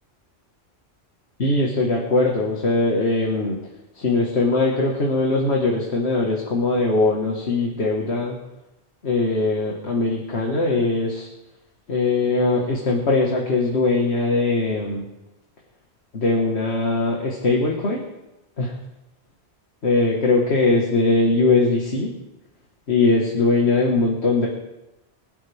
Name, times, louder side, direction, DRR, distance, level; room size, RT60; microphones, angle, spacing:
voice 1, 1.4-3.6 3.9-8.4 9.0-11.3 11.9-15.1 16.1-18.0 18.6-18.8 19.8-22.1 22.9-24.5, left 3 dB, 75° left, -1 dB, 2.1 m, -21 dB
24.5 x 11.5 x 3.6 m, 0.95 s
omnidirectional pair, 1.1 m